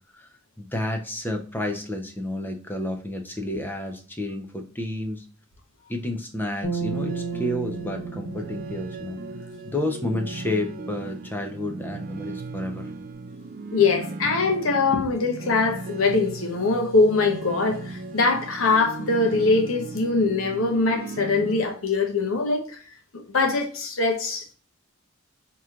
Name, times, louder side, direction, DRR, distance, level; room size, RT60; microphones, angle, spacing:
voice 1, 0.6-5.2 5.9-9.2 9.7-12.9, left 1 dB, 10° left, 0.6 m, -30 dB
sound 1, 6.6-10.0, right 5 dB, 45° left, 1.4 m, -33 dB
sound 2, 6.9-21.6, right 3 dB, 45° right, 0.3 m, -37 dB
voice 2, 13.7-22.8 23.1-24.5, left 3 dB, 80° left, 0.9 m, -22 dB
4.7 x 2.9 x 2.4 m
head